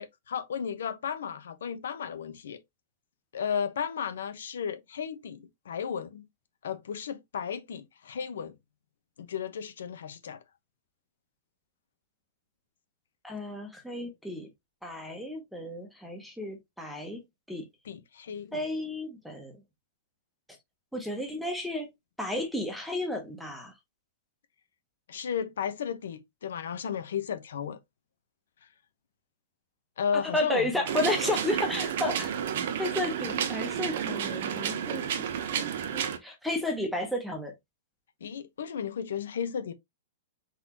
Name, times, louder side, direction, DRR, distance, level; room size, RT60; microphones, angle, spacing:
voice 1, 0.0-2.6 3.3-6.3 6.6-8.6 9.2-10.4 17.8-18.7 25.1-27.8 30.0-30.8 38.2-39.7, left 7 dB, 75° left, 0.9 m, -34 dB
voice 2, 13.2-14.5 14.8-17.2 17.5-17.6 18.5-19.5 20.9-21.9 22.2-23.7 30.3-32.3 32.8-35.0 35.5-37.5, left 1 dB, ahead, 0.8 m, -32 dB
sound 1, 30.9-36.2, right 8 dB, 45° right, 0.8 m, -31 dB
4.1 x 4.0 x 2.9 m
hypercardioid pair, 180°, 0 cm